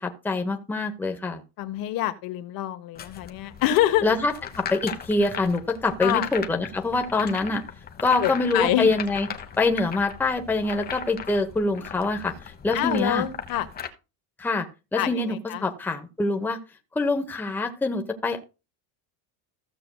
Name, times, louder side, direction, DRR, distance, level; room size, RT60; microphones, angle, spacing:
voice 1, 0.0-1.4 4.0-7.6 8.0-9.3 9.6-13.2 14.4-14.7 14.9-16.6 16.9-18.4, left 3 dB, 5° left, 0.9 m, -25 dB
voice 2, 1.6-4.1 6.0-6.3 8.2-8.9 12.7-13.7 15.0-15.7, left 12 dB, 50° left, 1.3 m, -26 dB
sound 1, 2.9-13.9, left 7 dB, 20° left, 1.1 m, -38 dB
15.5 x 7.6 x 2.3 m
cardioid pair, 170°, 46 cm